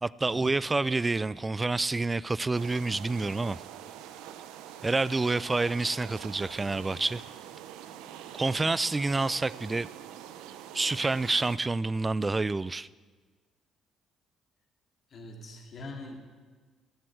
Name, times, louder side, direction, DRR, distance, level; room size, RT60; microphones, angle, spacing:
voice 1, 0.0-3.6 4.8-7.2 8.3-9.9 10.7-12.9, right 3 dB, 25° right, 0.4 m, -28 dB
sound 1, 2.5-11.6, right 10 dB, 80° right, 0.8 m, -45 dB
voice 2, 15.1-16.2, left 2 dB, 55° left, 2.9 m, -43 dB
17.0 x 7.6 x 9.2 m
hypercardioid pair, 60°, 0 cm